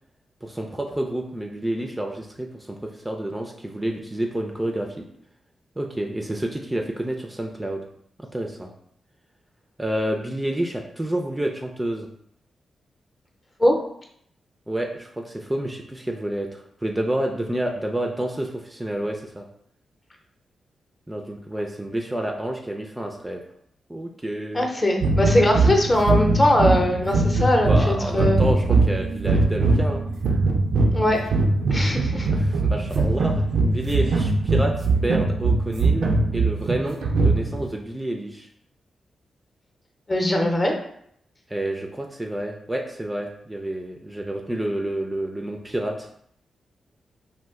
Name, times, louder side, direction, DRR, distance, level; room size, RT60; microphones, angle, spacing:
voice 1, 0.4-5.1 5.8-7.8 8.2-8.7 9.8-12.1 14.7-19.5 21.1-23.4 23.9-24.7 27.7-30.1 32.3-38.5 41.5-46.1, right 1 dB, 15° right, 2 dB, 0.4 m, -29 dB
voice 2, 24.5-28.4 30.9-31.2 31.7-32.3 40.1-40.8, left 1 dB, 30° left, 1 dB, 0.7 m, -21 dB
sound 1, 25.0-37.7, right 3 dB, 80° right, 0.4 m, -21 dB
2.4 x 2.1 x 3.5 m, 0.68 s
supercardioid pair, 50°, 0 cm